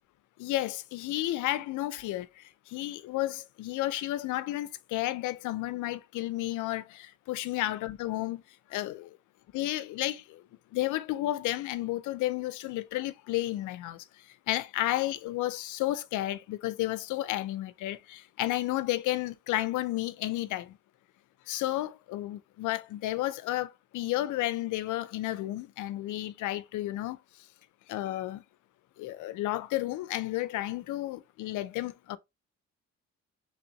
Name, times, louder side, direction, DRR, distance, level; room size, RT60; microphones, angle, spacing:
voice 1, 0.4-8.4 8.7-9.1 9.5-10.4 10.7-14.0 14.5-20.8 21.5-27.2 27.9-28.4 29.0-32.2, left 16 dB, 85° left, 0.5 m, -32 dB
3.5 x 3.4 x 2.8 m
cardioid pair, 90°, 30 cm